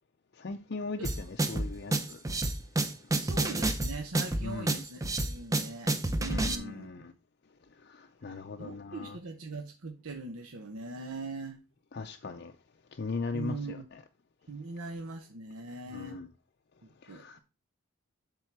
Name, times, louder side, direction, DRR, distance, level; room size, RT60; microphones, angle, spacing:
voice 1, 0.4-2.2 4.4-4.8 6.3-7.1 7.9-9.2 11.9-12.5 13.0-14.0 15.9-16.3 17.0-17.4, left 4 dB, 45° left, 0.5 m, -39 dB
sound 1, 1.0-6.5, right 2 dB, 15° right, 0.5 m, -29 dB
voice 2, 3.1-7.1 8.3-11.6 13.3-13.9 14.5-16.2 16.8-17.4, right 3 dB, 90° right, 0.9 m, -41 dB
7.7 x 3.7 x 5.9 m
head